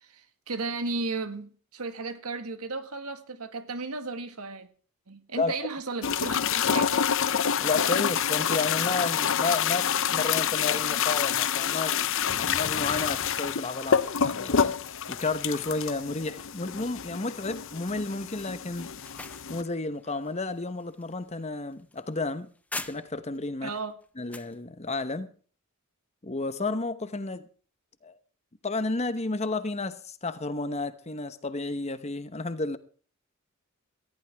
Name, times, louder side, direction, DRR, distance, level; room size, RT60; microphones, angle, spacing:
voice 1, 0.0-4.7 5.1-7.0 23.6-24.0, right 3 dB, 90° right, 1.7 m, -35 dB
voice 2, 5.4-5.7 7.6-12.0 12.3-14.7 15.1-18.9 19.5-22.5 22.8-23.7 24.2-25.3 26.2-27.5 28.0-28.2 28.6-32.8, left 3 dB, 30° left, 1.0 m, -32 dB
sound 1, 6.0-19.6, left 8 dB, 60° left, 0.7 m, -27 dB
sound 2, 18.8-23.4 23.8-24.6, left 2 dB, 5° left, 0.6 m, -43 dB
18.5 x 14.0 x 3.5 m
head